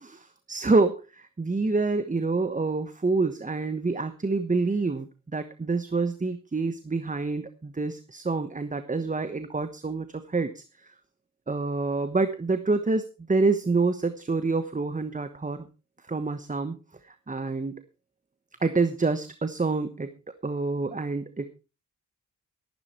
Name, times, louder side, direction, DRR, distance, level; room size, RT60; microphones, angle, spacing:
voice 1, 0.0-10.9 11.5-15.7 16.1-16.8 17.0-17.8 18.6-20.1 20.4-21.5, right 3 dB, 25° right, 10 dB, 1.1 m, -27 dB
13.5 x 12.0 x 4.3 m, 0.31 s
wide cardioid pair, 120°, 31 cm